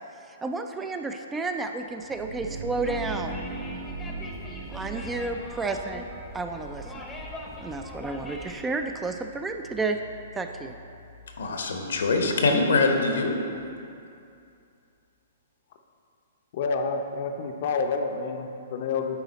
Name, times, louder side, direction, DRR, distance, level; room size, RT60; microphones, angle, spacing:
voice 1, 0.3-3.4 4.7-6.1 6.3-7.0 7.6-10.0 10.3-10.8, right 3 dB, 10° right, 5 dB, 0.3 m, -31 dB
sound 1, 1.9-13.5, right 3 dB, 65° right, 1.1 m, -41 dB
sound 2, 2.8-8.5, left 2 dB, 10° left, 0.7 m, -41 dB
voice 2, 11.4-13.4, left 3 dB, 85° left, 3 dB, 1.0 m, -23 dB
voice 3, 16.5-19.2, left 4 dB, 55° left, 5 dB, 0.6 m, -29 dB
9.4 x 4.1 x 4.1 m, 2.5 s
hypercardioid pair, 145°, 0 cm